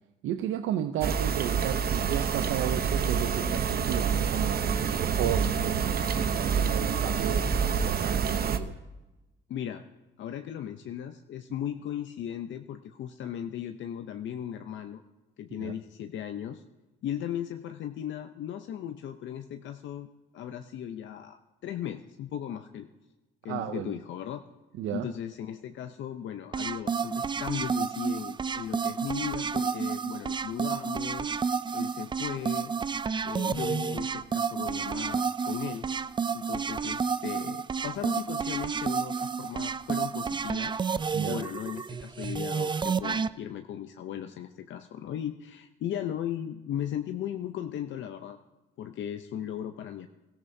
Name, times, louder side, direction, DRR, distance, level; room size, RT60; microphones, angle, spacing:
voice 1, 0.2-7.5 7.7-8.8 15.6-15.7 23.5-23.9 24.8-25.1 41.1-41.4, right 11 dB, 85° right, 8 dB, 0.6 m, -33 dB
Atmo-X.node.c, 1.0-8.6, right 6 dB, 50° right, 0.8 m, -27 dB
voice 2, 9.5-9.8 10.2-15.0 15.4-16.6 17.0-20.1 20.3-22.9 23.4-24.4 24.9-32.7 33.2-35.9 36.3-40.8 41.3-48.4 48.8-50.1, left 10 dB, 70° left, 7 dB, 0.6 m, -37 dB
sound 1, 26.5-43.3, right 6 dB, 25° right, 0.4 m, -30 dB
22.0 x 14.0 x 2.7 m, 1.1 s
cardioid pair, 90°, 20 cm